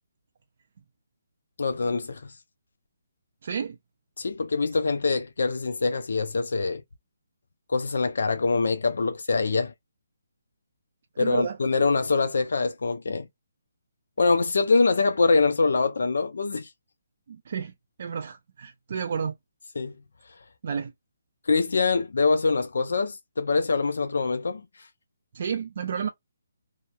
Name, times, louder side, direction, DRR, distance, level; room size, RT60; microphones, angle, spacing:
voice 1, 1.6-2.3 4.2-6.8 7.7-9.7 11.2-13.3 14.2-16.7 19.8-19.9 21.5-24.9, left 4 dB, 75° left, 0.4 m, -24 dB
voice 2, 3.4-3.8 11.2-11.6 17.3-17.7 18.0-19.3 20.6-20.9 25.3-26.1, right 7 dB, 50° right, 0.3 m, -31 dB
2.9 x 2.0 x 2.2 m
hypercardioid pair, 165°, 0 cm